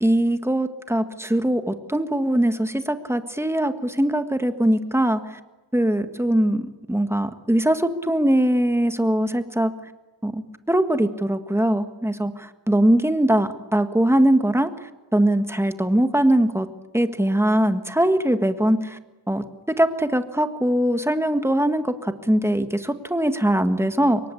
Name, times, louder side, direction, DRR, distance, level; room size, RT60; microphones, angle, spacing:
voice 1, 0.0-5.4 5.7-9.7 10.2-14.7 15.1-16.7 16.9-19.0 19.3-24.2, right 1 dB, 5° right, 8 dB, 1.6 m, -21 dB
26.0 x 23.0 x 8.5 m, 1.2 s
wide cardioid pair, 125°, 41 cm